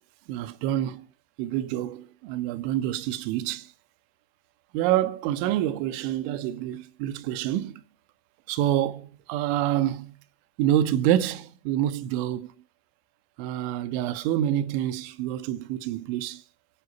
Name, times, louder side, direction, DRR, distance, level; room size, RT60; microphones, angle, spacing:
voice 1, 0.3-1.1 1.4-3.7 4.7-7.8 8.5-10.1 10.6-12.5 13.4-16.4, right 12 dB, 60° right, 1.7 m, -27 dB
23.5 x 9.8 x 5.4 m
figure-of-eight pair, 75°, 31 cm